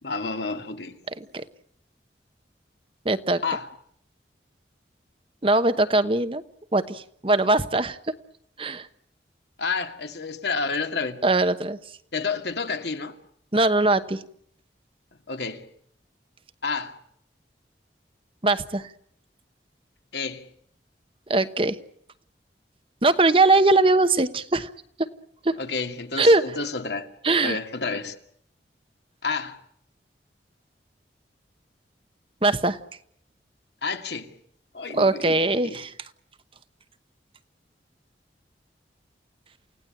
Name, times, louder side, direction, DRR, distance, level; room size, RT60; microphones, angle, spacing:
voice 1, 0.0-1.0 3.4-3.7 9.6-11.2 12.1-13.2 15.3-15.6 16.6-17.0 20.1-20.5 25.6-27.1 27.4-28.1 29.2-29.6 33.8-34.3 34.7-35.4 35.6-35.8, left 4 dB, 70° left, 2.3 m, -30 dB
voice 2, 3.0-3.4 5.4-6.4 6.7-8.1 8.6-8.9 11.2-11.8 13.5-14.2 18.4-18.9 21.3-21.8 23.0-24.7 25.0-25.1 25.4-25.6 26.2-26.4 27.2-27.6 32.4-32.8 34.9-35.9, right 2 dB, 30° right, 0.9 m, -21 dB
29.0 x 17.0 x 8.7 m
head